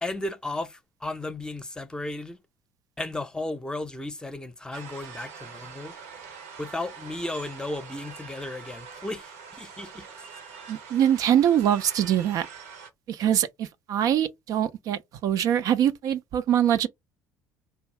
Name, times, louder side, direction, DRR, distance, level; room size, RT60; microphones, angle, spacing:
voice 1, 0.0-2.4 3.0-5.9 6.6-10.1, left 2 dB, 10° left, 0.6 m, -34 dB
sound 1, 4.7-12.9, right 6 dB, 80° right, 0.8 m, -44 dB
voice 2, 10.7-12.5 13.1-16.9, right 10 dB, 55° right, 0.4 m, -23 dB
2.5 x 2.3 x 3.1 m
hypercardioid pair, 65°, 7 cm